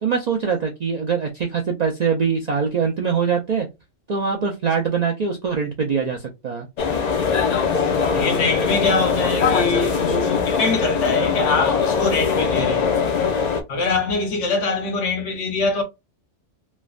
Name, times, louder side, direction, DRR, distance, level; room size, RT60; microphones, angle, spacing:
voice 1, 0.0-3.7 4.1-6.7, right 6 dB, 60° right, 0.4 m, -23 dB
sound 1, 6.8-13.6, left 6 dB, 55° left, 0.4 m, -21 dB
voice 2, 8.1-13.0 13.7-15.8, left 3 dB, 80° left, 1.2 m, -23 dB
3.2 x 2.1 x 2.3 m
omnidirectional pair, 1.2 m